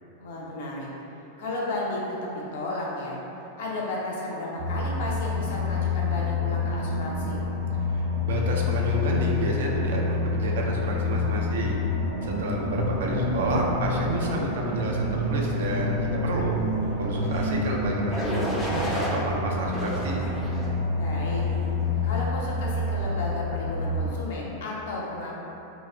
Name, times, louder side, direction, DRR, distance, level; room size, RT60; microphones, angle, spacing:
voice 1, 0.2-0.9 1.4-2.1 2.5-3.2 3.6-7.4 20.9-21.4 22.0-25.3, left 2 dB, 55° left, -4 dB, 0.5 m, -33 dB
sound 1, 4.6-24.1, left 3 dB, 80° right, 0.8 m, -28 dB
voice 2, 7.9-11.8 12.2-16.5 17.0-20.2, right 2 dB, 60° right, -1 dB, 0.3 m, -30 dB
sound 2, 17.2-17.6 18.1-19.2 19.7-20.8 21.3-21.7, equal, 5° left, 0.4 m, -33 dB
2.3 x 2.0 x 3.4 m, 2.9 s
figure-of-eight pair, 90°, 0 cm